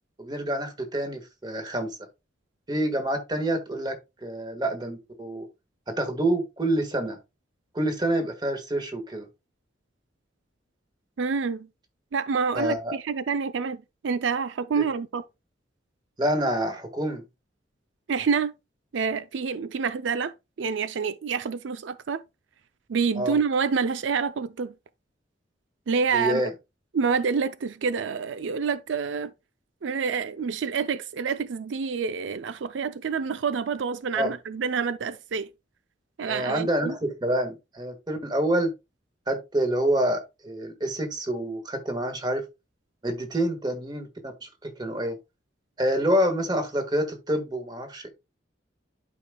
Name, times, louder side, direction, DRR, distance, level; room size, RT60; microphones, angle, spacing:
voice 1, 0.2-2.0 2.7-3.9 4.2-5.5 5.9-7.2 7.7-9.3 12.5-13.0 14.7-14.8 16.2-17.2 23.1-23.4 26.1-26.5 34.1-34.3 36.2-38.7 39.3-42.4 43.0-45.2 45.8-48.1, right 1 dB, 25° right, 1.5 m, -27 dB
voice 2, 11.2-11.7 12.1-15.2 18.1-18.5 18.9-22.2 22.9-24.7 25.9-26.5 26.9-29.3 29.8-35.5 36.2-36.9, right 5 dB, 85° right, 0.4 m, -27 dB
11.5 x 5.0 x 2.2 m
head